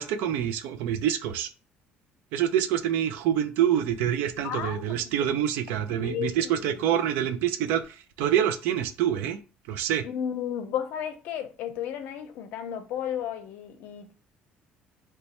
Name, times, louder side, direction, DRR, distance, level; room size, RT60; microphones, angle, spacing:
voice 1, 0.0-1.5 2.3-9.4 9.7-10.1, right 10 dB, 85° right, 0.4 m, -26 dB
voice 2, 4.4-5.1 5.9-6.7 10.0-14.1, left 9 dB, 65° left, 0.6 m, -33 dB
3.0 x 2.2 x 4.1 m
cardioid pair, 165°, 3 cm